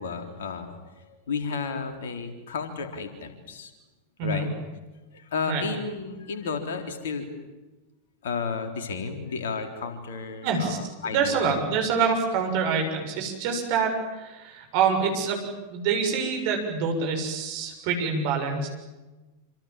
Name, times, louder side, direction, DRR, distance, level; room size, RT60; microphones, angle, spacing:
voice 1, 0.0-3.7 4.2-4.5 5.1-7.3 8.2-11.7, left 5 dB, 60° left, 6 dB, 3.9 m, -33 dB
voice 2, 10.4-10.8 11.0-15.4 15.7-18.7, right 5 dB, 45° right, 3 dB, 6.8 m, -26 dB
27.5 x 27.0 x 7.5 m, 1.1 s
figure-of-eight pair, 90°, 0 cm